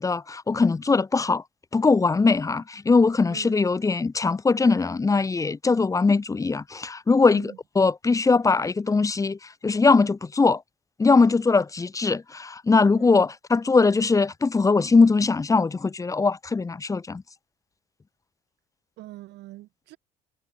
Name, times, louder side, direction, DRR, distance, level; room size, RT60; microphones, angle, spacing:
voice 1, 0.0-1.4 1.7-10.6 11.0-17.2, left 4 dB, 20° left, 1.0 m, -21 dB
voice 2, 13.0-13.3 19.0-20.0, right 17 dB, 80° right, 7.4 m, -43 dB
cardioid pair, 110°, 17 cm